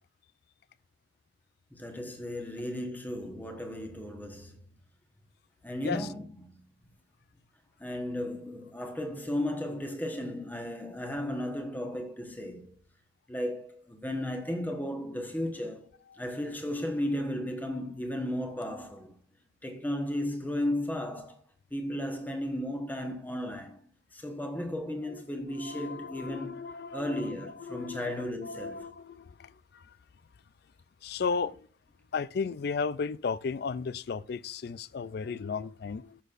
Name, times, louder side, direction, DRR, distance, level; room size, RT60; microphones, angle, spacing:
voice 1, 1.7-4.6 5.6-6.6 7.8-12.7 13.3-15.9 16.2-19.2 19.6-21.4 21.7-23.8 24.1-26.6 26.9-28.9, left 1 dB, 10° left, 1.1 m, -35 dB
voice 2, 25.6-29.8 31.0-31.7 32.1-36.2, left 5 dB, 55° left, 0.4 m, -35 dB
14.5 x 6.3 x 2.5 m
head